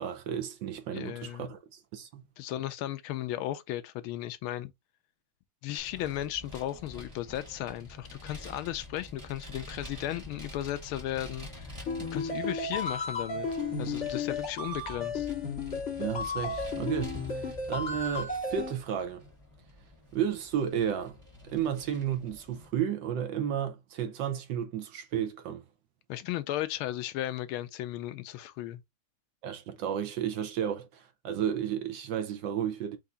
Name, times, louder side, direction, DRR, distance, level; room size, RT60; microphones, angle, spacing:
voice 1, 0.0-2.2 16.0-19.2 20.1-21.2 21.4-25.6 29.4-33.0, right 9 dB, 65° right, 1.3 m, -33 dB
voice 2, 0.9-1.5 2.4-4.7 5.6-11.7 12.1-13.5 13.8-15.3 26.1-28.8, left 13 dB, 80° left, 1.5 m, -35 dB
Vehicle, 5.8-22.7, left 1 dB, 15° right, 1.6 m, -47 dB
sound 1, 11.9-18.7, left 3 dB, 35° left, 2.0 m, -34 dB
4.7 x 2.8 x 3.8 m
omnidirectional pair, 2.3 m